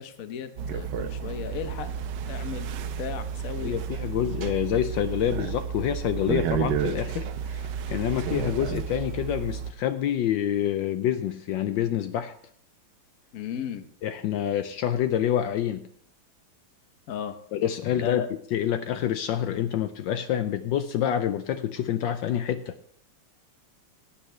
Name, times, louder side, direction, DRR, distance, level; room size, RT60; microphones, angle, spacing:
voice 1, 0.0-1.9 2.3-2.7 3.0-3.7 13.3-13.9 17.1-17.4 18.0-18.3, left 8 dB, 55° left, 9 dB, 1.1 m, -35 dB
sound 1, 0.6-9.7, right 7 dB, 70° right, 1.2 m, -31 dB
voice 2, 3.6-12.3 14.0-15.9 17.5-18.2 18.5-22.7, left 10 dB, 75° left, 9 dB, 1.2 m, -27 dB
18.5 x 8.7 x 3.2 m, 0.64 s
omnidirectional pair, 2.2 m